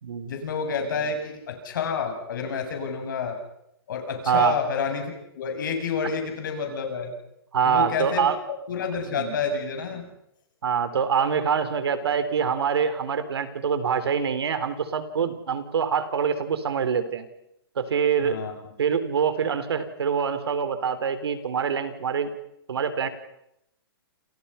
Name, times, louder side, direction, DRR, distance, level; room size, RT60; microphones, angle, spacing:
voice 1, 0.2-3.3 3.9-7.1 7.6-8.3 8.7-10.1 18.2-18.7, left 5 dB, 50° left, 4 dB, 7.7 m, -29 dB
voice 2, 4.3-4.6 7.5-8.4 9.1-9.4 10.6-17.3 17.8-18.4 18.8-22.3 22.7-23.1, right 7 dB, 80° right, 12 dB, 3.7 m, -25 dB
29.0 x 28.0 x 5.8 m, 0.79 s
hypercardioid pair, 175°, 13 cm